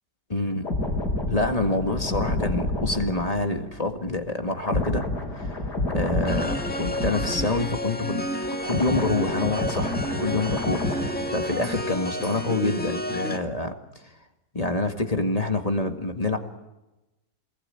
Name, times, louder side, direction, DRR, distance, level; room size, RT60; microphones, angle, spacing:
voice 1, 0.3-0.7 1.3-5.0 5.4-5.5 5.9-8.2 8.7-9.9 10.2-13.7 14.5-16.4, left 2 dB, 20° left, 5 dB, 1.9 m, -27 dB
sound 1, 0.6-8.1 8.4-12.1 12.4-12.7, left 2 dB, 80° left, 4.5 m, -30 dB
sound 2, 6.3-13.4, equal, 5° left, 1.9 m, -31 dB
28.0 x 20.5 x 9.0 m, 1.0 s
omnidirectional pair, 1.8 m